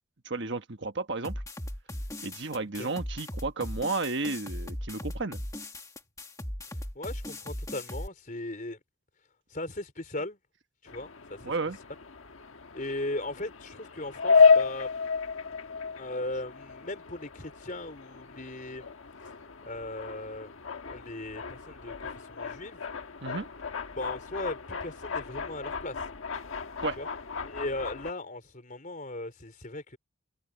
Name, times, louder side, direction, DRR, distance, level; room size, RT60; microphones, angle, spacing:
voice 1, 0.2-1.4 2.2-5.4 11.4-11.8 23.2-23.5 26.8-27.0, right 3 dB, 55° right, 1.4 m, -32 dB
sound 1, 1.2-8.1, left 1 dB, 15° left, 1.8 m, -38 dB
voice 2, 6.7-8.8 9.5-10.4 10.8-11.5 12.7-14.9 15.9-18.9 19.6-20.5 20.8-22.9 24.0-26.1 27.0-27.1 27.4-30.0, left 2 dB, 40° left, 4.3 m, -38 dB
sound 2, 10.9-28.1, left 5 dB, 70° left, 1.4 m, -31 dB
head